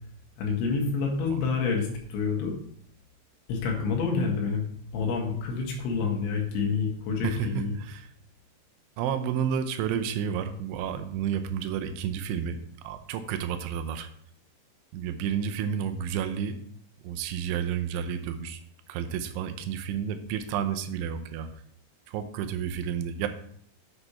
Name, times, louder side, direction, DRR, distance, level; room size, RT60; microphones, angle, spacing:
voice 1, 0.4-2.5 3.5-4.7 4.9-7.8, left 5 dB, 80° left, 0 dB, 4.0 m, -28 dB
voice 2, 7.2-8.1 9.0-14.1 14.9-16.6 17.0-18.6 18.9-21.5 22.1-23.3, right 8 dB, 85° right, 8 dB, 3.1 m, -31 dB
8.1 x 6.7 x 4.3 m, 0.63 s
omnidirectional pair, 5.4 m